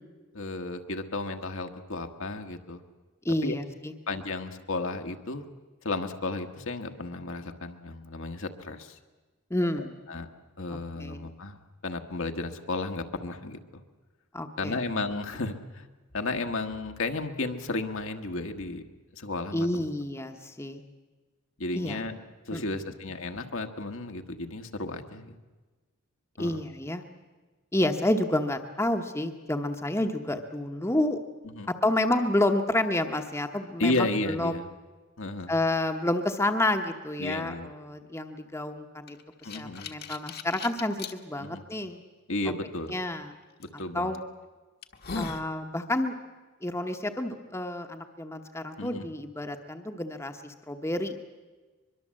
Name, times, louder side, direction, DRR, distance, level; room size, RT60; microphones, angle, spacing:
voice 1, 0.3-2.8 3.4-3.5 4.1-5.5 5.8-9.0 10.1-10.3 10.6-13.8 14.6-15.9 16.1-18.8 19.1-19.8 21.6-22.1 22.5-25.4 26.4-26.6 31.4-31.7 33.8-34.6 35.2-35.5 37.2-37.7 39.4-39.9 41.4-41.6 42.3-42.9 43.6-44.2 48.8-49.0, left 2 dB, 65° left, 5 dB, 1.4 m, -33 dB
voice 2, 3.2-3.9 9.5-10.0 10.7-11.3 14.3-14.8 19.5-20.8 21.7-22.0 22.5-22.6 26.4-27.0 27.7-31.2 31.7-34.7 35.5-42.0 42.9-43.3 43.7-44.2 45.1-46.1 46.6-51.3, left 1 dB, 10° left, 5 dB, 1.0 m, -29 dB
sound 1, 39.1-41.1 41.8-41.9 43.6-43.8 44.4-44.5 44.8-45.5, left 4 dB, 45° left, 1.3 m, -38 dB
23.0 x 22.5 x 7.6 m, 1.3 s
head